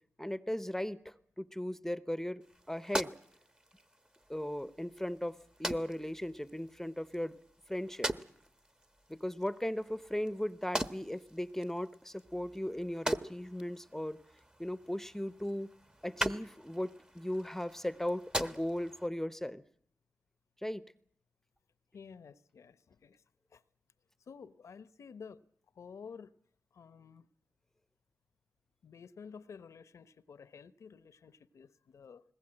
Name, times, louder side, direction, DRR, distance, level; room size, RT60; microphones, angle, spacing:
voice 1, 0.2-3.2 4.3-7.4 7.7-8.1 9.1-14.2 14.6-15.7 16.0-19.6 20.6-20.8, left 1 dB, 5° left, 0.8 m, -37 dB
sound 1, 2.4-19.1, right 1 dB, 15° right, 1.1 m, -42 dB
voice 2, 21.9-23.2 23.5-23.6 24.3-25.4 25.7-26.4 26.7-27.3 28.8-32.2, left 6 dB, 75° left, 0.9 m, -51 dB
20.5 x 19.5 x 8.9 m
cardioid pair, 50°, 5 cm